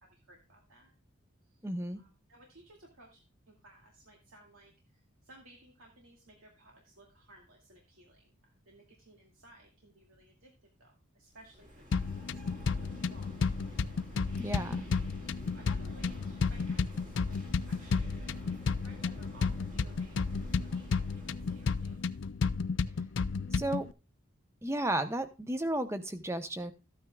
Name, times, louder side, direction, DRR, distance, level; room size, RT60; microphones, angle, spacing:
voice 1, 0.0-0.9 1.4-1.6 1.9-12.0 12.3-14.0 15.2-20.2 20.6-22.0, right 1 dB, 80° right, -1 dB, 2.3 m, -59 dB
voice 2, 1.6-2.0 14.4-14.9 23.5-23.9 24.6-26.7, right 1 dB, 15° right, 10 dB, 0.8 m, -33 dB
sound 1, 11.4-22.2, equal, 40° right, 1.9 m, -48 dB
sound 2, 11.9-23.9, left 5 dB, 60° left, 0.4 m, -32 dB
14.0 x 9.3 x 2.3 m, 0.29 s
head